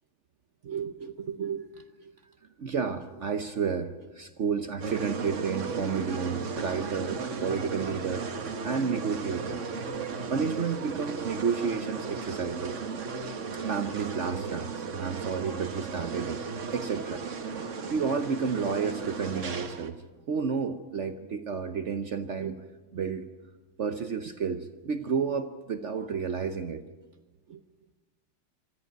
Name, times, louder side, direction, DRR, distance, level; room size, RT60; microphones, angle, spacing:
voice 1, 0.6-2.1 2.6-8.3 8.6-9.6 10.3-12.8 13.5-16.4 16.7-17.2 17.5-17.6 17.9-20.0 20.3-22.6 22.9-23.3 23.8-26.8 27.5-27.6, right 6 dB, 70° right, 9 dB, 0.6 m, -31 dB
sound 1, 4.8-19.9, right 5 dB, 40° right, 1.2 m, -35 dB
24.0 x 14.0 x 9.1 m, 1.2 s
omnidirectional pair, 2.3 m